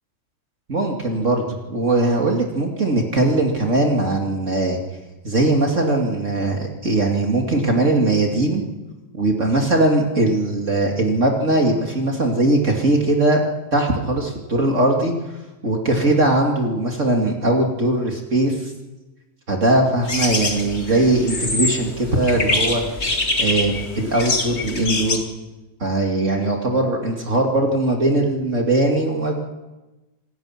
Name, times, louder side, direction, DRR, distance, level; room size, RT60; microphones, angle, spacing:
voice 1, 0.7-4.8 5.2-8.6 9.1-13.4 13.7-15.1 15.6-18.7 19.5-22.8 23.4-25.2 25.8-29.3, right 2 dB, 35° right, 1 dB, 1.1 m, -20 dB
sound 1, 20.0-25.2, left 2 dB, 75° left, 0.6 m, -24 dB
26.5 x 19.5 x 6.0 m, 1.1 s
omnidirectional pair, 5.8 m